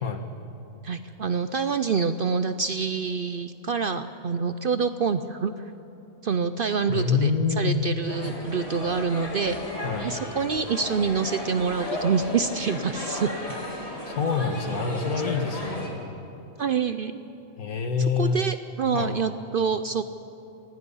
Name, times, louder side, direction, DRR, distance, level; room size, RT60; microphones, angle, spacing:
voice 1, 0.8-5.5 6.2-7.3 7.6-9.6 10.0-13.3 16.6-17.2 18.2-20.0, right 5 dB, 60° right, 10 dB, 0.6 m, -26 dB
voice 2, 6.9-7.9 9.8-10.1 13.5-13.6 14.1-16.0 17.6-18.5 18.9-19.2, left 5 dB, 90° left, 6 dB, 1.9 m, -26 dB
sound 1, 8.1-15.9, left 1 dB, 25° left, 2.9 m, -34 dB
26.0 x 19.5 x 5.5 m, 2.8 s
omnidirectional pair, 1.5 m